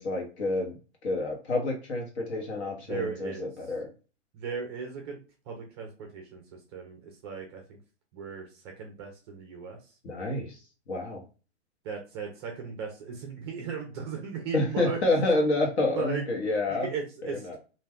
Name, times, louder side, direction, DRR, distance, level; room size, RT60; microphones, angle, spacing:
voice 1, 0.0-3.9 10.0-10.6 10.9-11.2 14.5-16.9 17.4-17.6, left 2 dB, 65° left, 1 dB, 1.2 m, -28 dB
voice 2, 2.9-3.5 4.3-5.2 5.5-7.8 8.1-9.8 11.8-15.0 15.9-16.2 16.7-17.6, right 5 dB, 25° right, 2 dB, 0.4 m, -37 dB
2.5 x 2.2 x 3.4 m, 0.34 s
hypercardioid pair, 145°, 36 cm